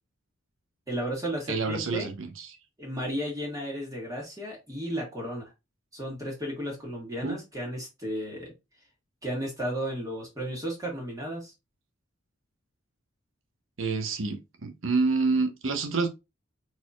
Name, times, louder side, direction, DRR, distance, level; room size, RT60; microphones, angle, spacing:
voice 1, 0.9-2.1 2.8-5.5 5.9-8.5 9.2-11.5, equal, 15° right, 1.6 m, -34 dB
voice 2, 1.5-2.6 7.2-7.4 13.8-16.1, right 4 dB, 65° right, 1.0 m, -28 dB
4.2 x 4.2 x 2.3 m
head